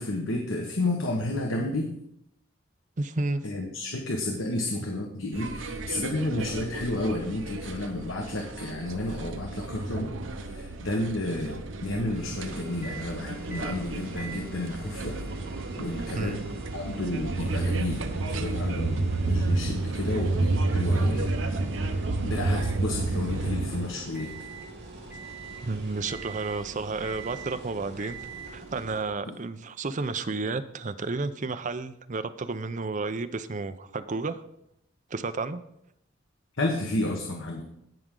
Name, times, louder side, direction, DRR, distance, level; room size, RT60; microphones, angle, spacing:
voice 1, 0.0-1.9 3.4-15.2 15.8-21.4 22.2-24.3 29.2-29.4 36.6-37.6, left 2 dB, 80° left, 2 dB, 1.2 m, -31 dB
voice 2, 3.0-3.4 16.2-16.4 25.6-28.2 28.5-34.4 35.1-35.6, right 3 dB, 40° right, 11 dB, 0.6 m, -31 dB
sound 1, 5.3-23.9, right 2 dB, 75° right, 0.9 m, -31 dB
sound 2, 12.1-29.0, right 2 dB, 55° right, 3.5 m, -44 dB
sound 3, 12.8-13.1 13.5-13.8 14.2-24.7 25.1-25.7 26.1-26.6 27.0-27.6 28.0-28.5, right 6 dB, 10° right, 1.2 m, -47 dB
17.0 x 6.1 x 3.8 m, 0.78 s
head